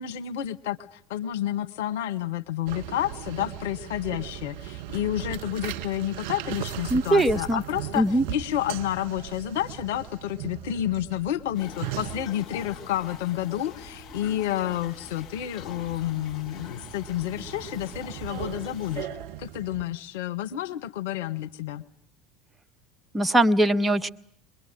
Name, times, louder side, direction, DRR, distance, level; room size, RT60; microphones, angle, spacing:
voice 1, 0.0-19.1 19.4-21.8, left 12 dB, 65° left, 8 dB, 1.1 m, -30 dB
sound 1, 2.7-19.8, right 13 dB, 60° right, 1.8 m, -39 dB
voice 2, 6.9-7.6 8.0-8.2 23.1-24.1, right 1 dB, 15° right, 9 dB, 1.1 m, -21 dB
sound 2, 11.5-19.0, left 8 dB, 35° left, 3.7 m, -45 dB
23.5 x 22.5 x 9.1 m, 0.64 s
figure-of-eight pair, 75°, 0 cm